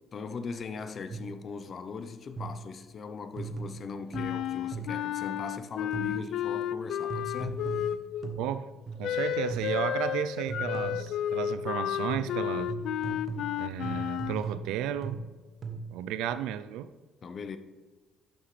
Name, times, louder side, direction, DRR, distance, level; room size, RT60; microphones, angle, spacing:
voice 1, 0.1-7.7 17.2-17.6, left 5 dB, 50° left, 0.7 m, -40 dB
sound 1, 1.1-1.5 2.4-2.8 3.4-5.2 5.9-6.4 7.1-9.2 9.5-10.0 10.5-11.3 12.1-16.1, right 4 dB, 45° right, 1.0 m, -39 dB
Wind instrument woodwind instrument, 4.1-8.3 9.0-14.4, left 11 dB, 70° left, 0.3 m, -32 dB
voice 2, 8.4-8.7 9.0-12.8 13.6-15.2 15.9-16.9, right 10 dB, 85° right, 0.4 m, -33 dB
12.0 x 5.8 x 3.3 m
supercardioid pair, 75°, 0 cm